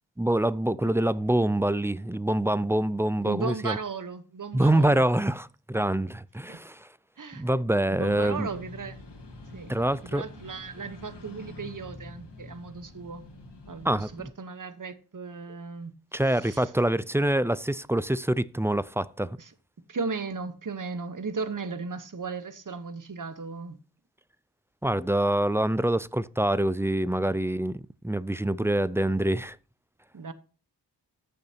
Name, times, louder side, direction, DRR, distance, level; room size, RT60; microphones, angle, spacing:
voice 1, 0.2-3.8 4.5-6.9 7.4-8.5 9.7-10.2 13.8-14.1 16.1-19.4 24.8-29.6, right 1 dB, 5° right, 0.3 m, -25 dB
voice 2, 3.2-5.0 6.5-6.6 7.2-7.4 7.9-9.0 9.5-9.7 10.1-13.2 13.7-15.9 16.3-16.7 19.4-19.5 19.9-23.8 27.2-27.4 30.1-30.3, right 4 dB, 50° right, 1.1 m, -36 dB
sound 1, 8.1-14.3, left 2 dB, 85° left, 2.1 m, -46 dB
14.0 x 6.8 x 2.8 m
wide cardioid pair, 75°, 41 cm